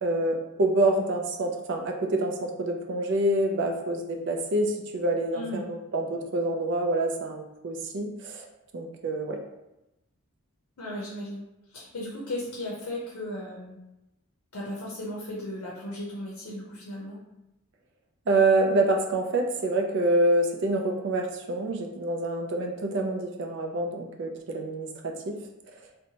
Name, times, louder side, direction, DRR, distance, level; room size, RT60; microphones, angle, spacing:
voice 1, 0.0-8.5 8.7-9.4 18.3-25.4, right 2 dB, 55° right, 3 dB, 0.4 m, -27 dB
voice 2, 10.8-11.4 11.7-13.8 14.5-17.2, left 1 dB, 85° left, -4 dB, 0.6 m, -36 dB
2.8 x 2.1 x 2.7 m, 0.93 s
head